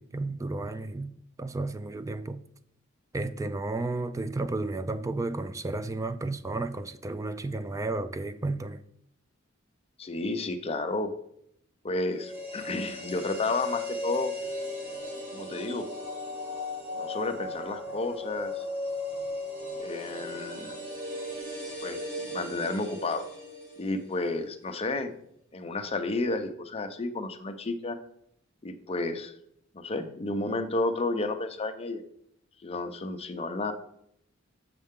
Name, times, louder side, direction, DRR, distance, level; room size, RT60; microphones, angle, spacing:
voice 1, 0.0-2.4 3.1-8.8, right 2 dB, 15° right, 0.3 m, -33 dB
voice 2, 10.0-11.1 11.8-14.3 15.3-15.9 17.0-18.6 19.8-20.8 21.8-22.0 22.3-23.3 23.8-25.1 25.5-28.0 28.6-29.3 29.7-32.0 32.6-33.7, left 2 dB, 30° left, 0.6 m, -31 dB
sound 1, 12.1-24.2 24.5-24.6, left 1 dB, 30° right, 2.4 m, -36 dB
6.7 x 6.5 x 3.6 m
head